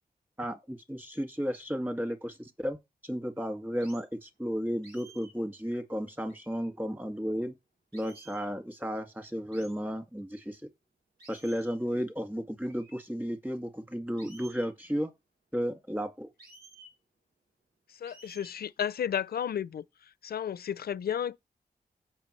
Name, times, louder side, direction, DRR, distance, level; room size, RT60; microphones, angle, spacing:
voice 1, 0.4-2.8 3.0-7.5 7.9-10.6 11.3-15.1 15.5-16.3, equal, 10° right, 2.2 m, -33 dB
sound 1, 3.8-4.1 4.8-5.4 6.3-6.7 7.9-8.5 9.5-9.8 11.2-11.8 12.7-13.0 14.2-14.7 16.4-17.0 18.0-18.6, right 2 dB, 85° right, 4.4 m, -54 dB
voice 2, 17.9-19.8 20.2-21.4, left 9 dB, 70° left, 0.5 m, -32 dB
17.0 x 5.6 x 3.3 m
cardioid pair, 80°, 16 cm